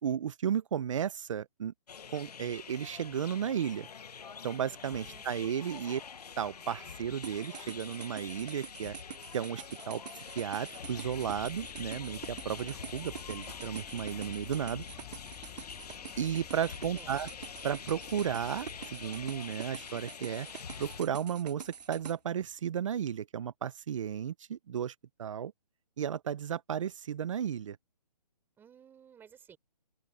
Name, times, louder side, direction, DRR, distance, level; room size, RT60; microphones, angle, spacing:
voice 1, 0.0-1.7 2.1-3.9 4.4-6.0 6.4-8.9 9.3-14.8 16.2-17.3 17.6-20.5 20.8-25.5 26.0-27.8, right 8 dB, 50° right, 0.9 m, -34 dB
sound 1, 1.9-21.0, left 7 dB, 65° left, 1.3 m, -46 dB
voice 2, 4.8-6.0 16.9-17.2 28.6-29.6, right 8 dB, 10° right, 4.2 m, -56 dB
sound 2, 7.2-22.1, right 7 dB, 75° right, 0.7 m, -46 dB
sound 3, 10.6-22.5, left 27 dB, 25° left, 2.6 m, -53 dB
open air
hypercardioid pair, 155°, 21 cm